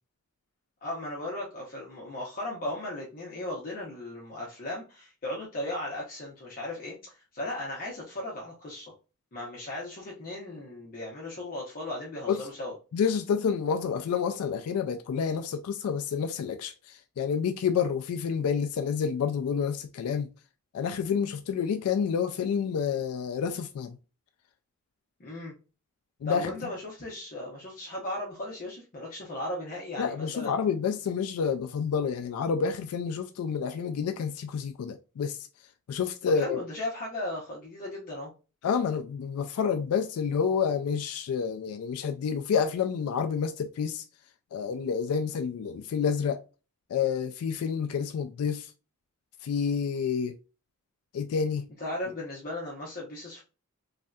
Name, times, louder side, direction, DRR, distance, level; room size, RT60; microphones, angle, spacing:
voice 1, 0.8-8.9 9.3-12.7 25.2-25.5 26.3-30.6 36.3-38.3 51.8-53.4, left 1 dB, 40° left, 0.8 m, -36 dB
voice 2, 12.9-20.3 20.7-24.0 26.2-26.5 30.0-35.5 35.9-36.6 38.6-44.0 44.5-46.4 46.9-48.7 49.4-50.3 51.1-51.7, left 6 dB, 80° left, 0.3 m, -29 dB
3.2 x 2.6 x 2.2 m
head